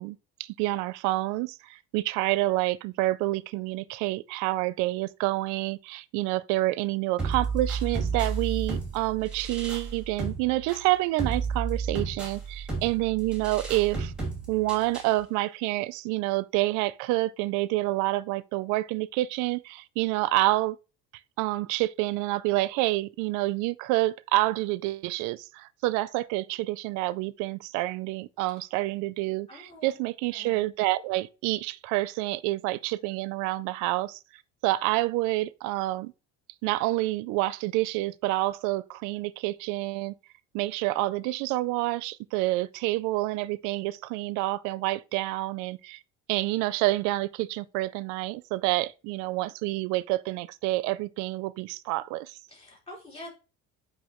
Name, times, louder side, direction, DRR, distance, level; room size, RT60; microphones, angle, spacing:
voice 1, 0.0-14.1 14.5-20.8 21.4-34.2 34.6-36.1 36.6-40.1 40.5-46.0 46.3-52.4, right 18 dB, 75° right, 0.4 m, -28 dB
sound 1, 7.2-15.2, right 5 dB, 5° right, 2.6 m, -33 dB
voice 2, 29.5-29.9 30.3-30.7 52.5-53.3, left 1 dB, 20° left, 4.4 m, -45 dB
8.4 x 5.4 x 3.0 m
cardioid pair, 165°, 30 cm